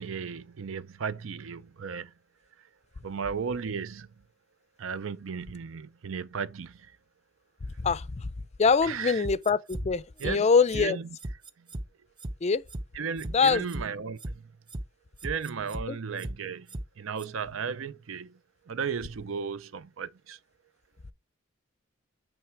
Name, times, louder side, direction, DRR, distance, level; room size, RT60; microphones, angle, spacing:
voice 1, 0.0-2.1 3.0-4.1 4.8-6.8 8.8-9.2 10.2-10.5 10.7-11.1 12.9-14.4 15.2-16.7 17.0-18.3 18.7-20.4, right 6 dB, 70° right, 0.5 m, -35 dB
voice 2, 7.8-8.3 8.6-11.0 12.4-12.6 13.3-13.6 15.9-16.0, left 5 dB, 35° left, 0.4 m, -24 dB
sound 1, 9.2-9.8 10.2-10.3 10.7-10.8 11.2-11.8 12.2-12.3 12.7-12.8 13.2-13.8 14.2-14.3 14.7-14.8 15.2-15.8 16.2-16.3 16.7-16.8 17.2-17.3, right 1 dB, 25° right, 0.5 m, -36 dB
8.9 x 3.2 x 4.6 m
head